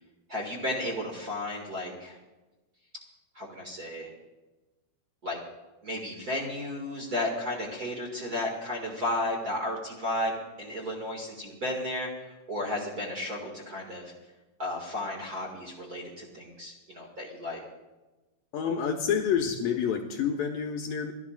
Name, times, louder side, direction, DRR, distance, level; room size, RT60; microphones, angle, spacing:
voice 1, 0.3-2.2 3.3-4.1 5.2-5.4 5.8-10.3 10.6-14.1 14.6-17.6, left 1 dB, 35° right, -1 dB, 1.5 m, -33 dB
voice 2, 18.5-21.1, left 7 dB, 75° left, 3 dB, 2.2 m, -28 dB
29.0 x 12.5 x 2.5 m, 1.1 s
omnidirectional pair, 4.7 m